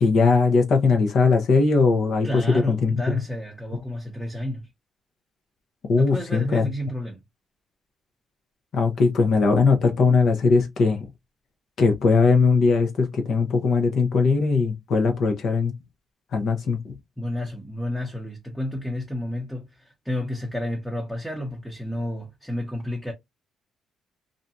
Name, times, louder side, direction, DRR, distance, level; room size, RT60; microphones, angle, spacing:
voice 1, 0.0-3.2 5.9-6.7 8.7-11.1 11.8-15.7 16.3-16.9, left 4 dB, 65° left, 0.7 m, -20 dB
voice 2, 2.2-4.7 6.0-7.2 17.2-23.1, left 1 dB, ahead, 0.7 m, -31 dB
2.6 x 2.2 x 2.6 m
cardioid pair, 90°, 0 cm